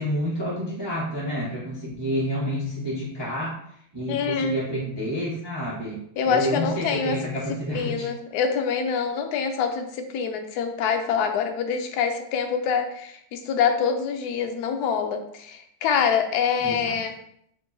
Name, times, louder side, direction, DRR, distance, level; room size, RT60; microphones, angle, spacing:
voice 1, 0.0-3.5 3.9-6.0 6.2-8.1 16.6-17.0, equal, 20° right, -7 dB, 0.7 m, -29 dB
voice 2, 4.1-4.6 6.2-7.2 7.7-17.1, left 6 dB, 80° left, 5 dB, 0.9 m, -25 dB
4.5 x 3.6 x 2.6 m, 0.70 s
omnidirectional pair, 2.2 m